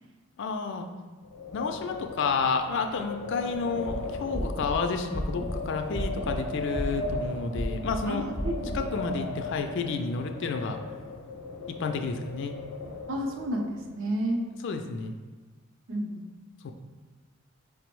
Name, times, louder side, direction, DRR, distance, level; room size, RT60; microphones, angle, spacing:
voice 1, 0.4-0.9 1.5-8.3 8.7-10.8 11.7-12.6 14.6-15.2 16.6-16.7, left 4 dB, 55° left, 6 dB, 0.3 m, -30 dB
Wind, 1.2-13.8, left 2 dB, 85° left, 0.7 m, -38 dB
sound 1, 3.7-4.0 4.3-4.8 5.1-5.6 5.9-6.4 6.8-7.2 7.6-8.0 8.4-8.8, equal, 5° right, 0.5 m, -32 dB
voice 2, 8.1-9.0 13.1-14.4 15.9-16.2, right 1 dB, 60° right, 2 dB, 0.5 m, -31 dB
5.1 x 2.0 x 4.5 m, 1.4 s
head